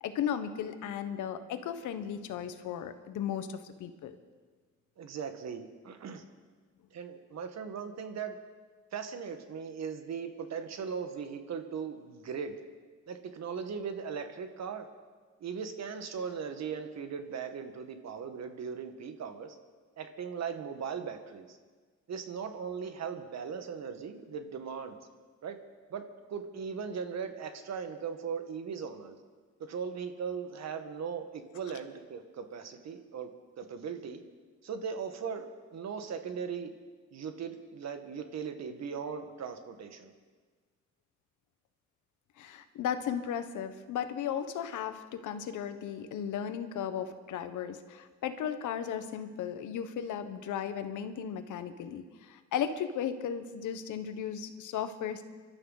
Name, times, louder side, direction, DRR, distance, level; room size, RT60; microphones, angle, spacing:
voice 1, 0.0-4.1 42.4-55.2, left 8 dB, 85° left, 10 dB, 1.2 m, -35 dB
voice 2, 5.0-6.2 6.9-8.4 8.9-12.6 13.1-14.9 15.4-19.6 20.0-21.6 22.1-25.0 25.4-25.6 25.9-26.0 26.3-29.2 29.6-33.3 33.6-34.2 34.6-36.7 37.1-40.1, right 6 dB, 60° right, 7 dB, 1.7 m, -38 dB
25.5 x 12.5 x 4.1 m, 1.4 s
cardioid pair, 90°, 30 cm